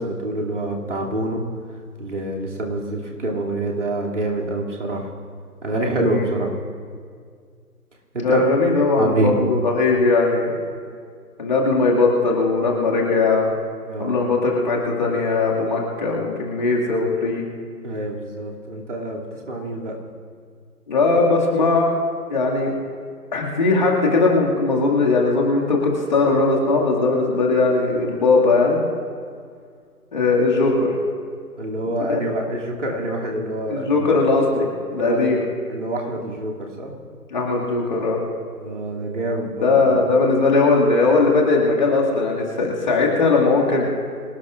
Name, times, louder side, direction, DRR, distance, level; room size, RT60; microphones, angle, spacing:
voice 1, 0.0-1.4 2.0-5.1 5.6-6.5 8.1-8.4 9.0-9.4 13.8-14.2 17.8-19.9 31.6-34.0 35.0-35.4 35.7-37.0 38.6-40.0, right 1 dB, 50° right, -2 dB, 2.7 m, -26 dB
voice 2, 8.2-10.5 11.4-13.5 14.0-17.4 20.9-21.9 22.3-22.7 23.3-28.8 30.1-30.9 32.1-32.2 33.7-35.4 37.3-38.2 39.6-43.9, left 3 dB, 30° left, -2 dB, 2.1 m, -19 dB
25.0 x 18.0 x 2.5 m, 2.1 s
figure-of-eight pair, 150°, 47 cm